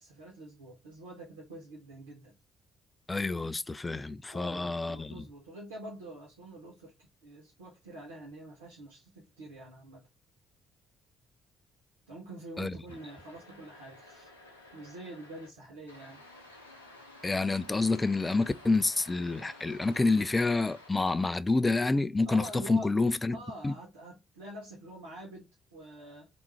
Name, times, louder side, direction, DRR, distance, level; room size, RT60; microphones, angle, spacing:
voice 1, 0.0-2.4 4.3-10.0 12.1-14.3 14.7-16.2 22.2-22.9 23.3-26.3, right 1 dB, 75° right, 1.2 m, -46 dB
voice 2, 3.1-5.2 12.6-12.7 17.2-23.4 23.6-23.7, left 3 dB, 20° left, 0.4 m, -28 dB
sound 1, 12.9-15.5 15.9-20.9, left 2 dB, 85° left, 0.7 m, -53 dB
3.7 x 3.0 x 4.4 m
figure-of-eight pair, 45°, 0 cm